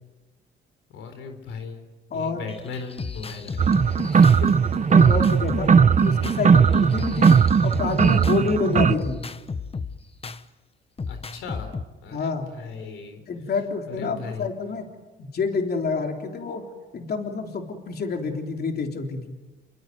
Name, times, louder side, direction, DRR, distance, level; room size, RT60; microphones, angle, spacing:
voice 1, 0.9-1.8 2.1-3.7 4.1-4.5 6.0-6.1 11.1-11.7 12.0-13.2 13.9-14.5, left 5 dB, 85° left, 6 dB, 4.0 m, -37 dB
voice 2, 2.1-2.5 4.1-4.2 4.9-5.7 6.0-9.2 12.1-12.5 13.3-14.9 15.2-16.6 16.9-19.2, left 4 dB, 55° left, 3 dB, 3.6 m, -28 dB
sound 1, 2.5-8.5 9.0-10.4 11.0-11.8, left 4 dB, 30° left, 1.2 m, -34 dB
sound 2, 3.6-8.9, right 6 dB, 40° right, 1.0 m, -18 dB
29.0 x 21.5 x 9.5 m, 1.1 s
cardioid pair, 90°, 20 cm